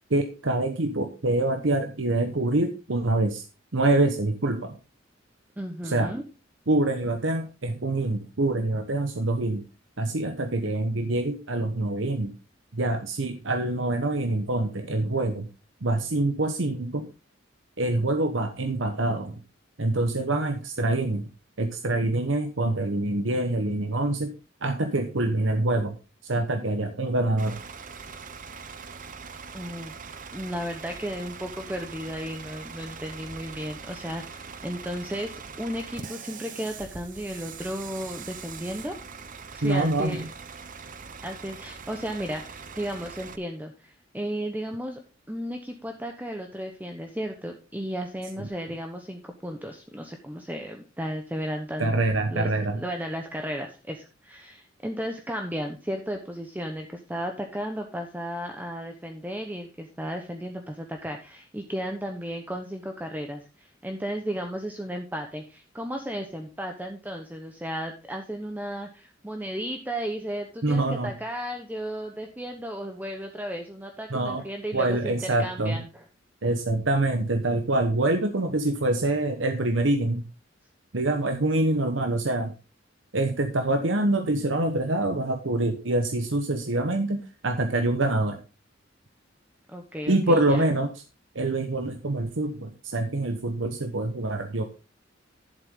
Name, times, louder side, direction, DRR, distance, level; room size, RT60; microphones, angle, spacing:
voice 1, 0.1-3.4 3.7-4.8 5.8-6.1 6.7-9.6 10.0-12.4 12.7-15.5 15.8-17.1 17.8-19.4 19.8-21.3 21.6-24.3 24.6-26.0 26.2-27.6 39.6-40.3 48.4-48.5 51.8-52.8 70.6-71.1 74.1-74.4 74.7-75.8 76.4-80.2 80.9-82.5 83.1-88.4 90.1-90.9 91.3-94.6, right 2 dB, 75° right, 6 dB, 1.1 m, -25 dB
voice 2, 5.6-6.2 29.5-29.9 30.3-38.9 39.5-40.3 41.2-45.0 45.3-52.0 52.3-52.5 52.7-76.0 89.7-90.6, equal, 10° right, 4 dB, 1.0 m, -34 dB
Bus / Idling, 27.4-43.4, right 5 dB, 45° right, 0.8 m, -42 dB
11.0 x 7.6 x 3.7 m, 0.31 s
head